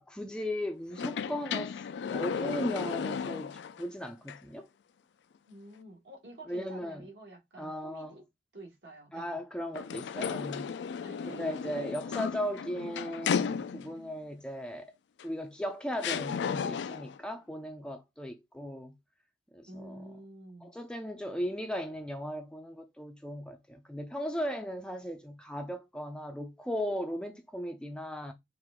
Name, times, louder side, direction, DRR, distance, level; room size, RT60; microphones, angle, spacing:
voice 1, 0.0-1.8 2.1-3.5 3.8-4.7 6.5-7.0 7.6-8.1 9.1-10.7 11.3-14.9 15.2-18.9 19.5-20.0 20.6-28.3, equal, 5° left, 0.4 m, -37 dB
sound 1, 0.9-3.8 4.3-4.4 9.7-14.1 15.2-15.3 16.0-17.2, left 6 dB, 70° left, 0.3 m, -34 dB
voice 2, 5.5-8.3 8.5-9.4 11.0-11.8 19.7-20.7, right 1 dB, 65° right, 1.7 m, -49 dB
4.7 x 2.5 x 3.6 m
head